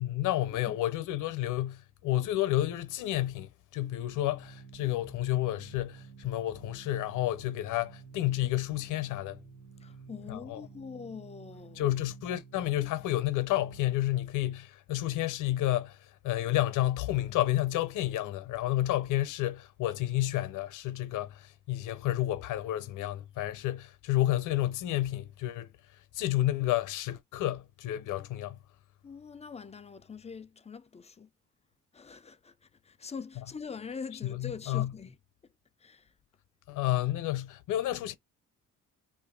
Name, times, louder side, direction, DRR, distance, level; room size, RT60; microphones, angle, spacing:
voice 1, 0.0-9.4 10.3-10.6 11.8-16.0 16.2-25.7 26.1-28.6 34.2-34.9 36.7-38.1, left 14 dB, 85° left, 0.6 m, -30 dB
Organ, 3.7-14.5, right 5 dB, 75° right, 1.0 m, -51 dB
voice 2, 9.8-11.9 29.0-31.3 31.9-32.5 32.8-35.2 35.8-36.1, left 5 dB, 20° left, 0.4 m, -43 dB
2.6 x 2.5 x 3.8 m
cardioid pair, 90°, 30 cm